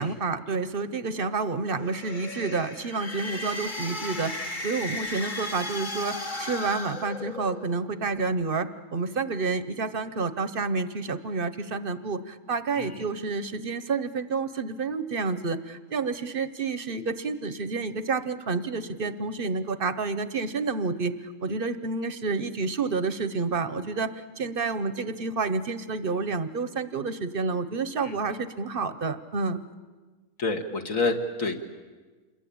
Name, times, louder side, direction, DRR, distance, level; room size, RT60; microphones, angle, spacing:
voice 1, 0.0-21.1 21.4-29.6, right 4 dB, 40° right, 12 dB, 1.0 m, -29 dB
sound 1, 1.7-7.8, left 2 dB, 35° left, 1.5 m, -35 dB
voice 2, 30.4-31.6, left 3 dB, 60° left, 4 dB, 2.2 m, -28 dB
27.0 x 22.0 x 8.6 m, 1.3 s
omnidirectional pair, 1.6 m